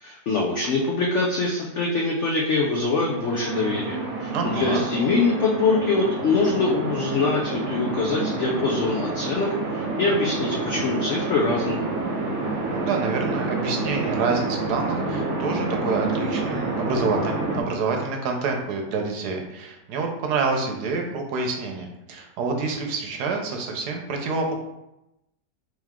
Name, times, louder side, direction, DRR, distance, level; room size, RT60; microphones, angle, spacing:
voice 1, 0.0-11.9, left 3 dB, 85° left, -1 dB, 0.6 m, -24 dB
sound 1, 2.9-17.6, right 3 dB, 50° right, 1.0 m, -28 dB
voice 2, 4.3-4.8 12.6-24.5, right 4 dB, 70° right, 2 dB, 1.1 m, -27 dB
3.4 x 3.1 x 3.5 m, 0.90 s
omnidirectional pair, 1.9 m